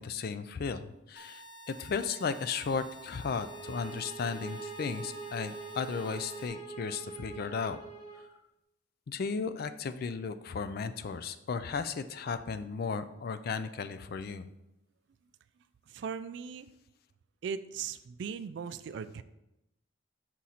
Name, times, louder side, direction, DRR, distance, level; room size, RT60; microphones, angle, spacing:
voice 1, 0.0-7.8 9.1-14.5, left 5 dB, 50° left, 11 dB, 0.4 m, -35 dB
sound 1, 1.2-6.5, right 1 dB, 70° left, 0.9 m, -50 dB
sound 2, 3.3-8.3, right 4 dB, 35° left, 1.5 m, -44 dB
voice 2, 15.9-16.7 17.4-19.2, right 6 dB, 65° right, 14 dB, 0.3 m, -38 dB
6.1 x 4.0 x 4.2 m, 0.90 s
head